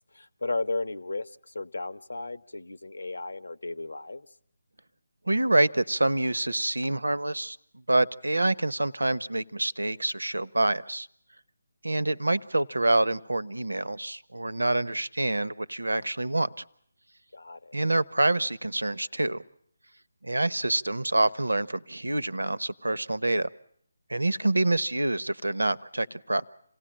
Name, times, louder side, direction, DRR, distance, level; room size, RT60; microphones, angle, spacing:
voice 1, 0.1-4.3 17.3-17.8, left 3 dB, 75° left, 15 dB, 1.0 m, -34 dB
voice 2, 5.3-7.6 7.9-11.1 11.8-16.6 17.7-19.4 20.2-23.5 24.1-26.5, right 2 dB, 85° right, 20 dB, 0.9 m, -26 dB
27.5 x 17.0 x 8.8 m, 0.68 s
figure-of-eight pair, 155°, 0 cm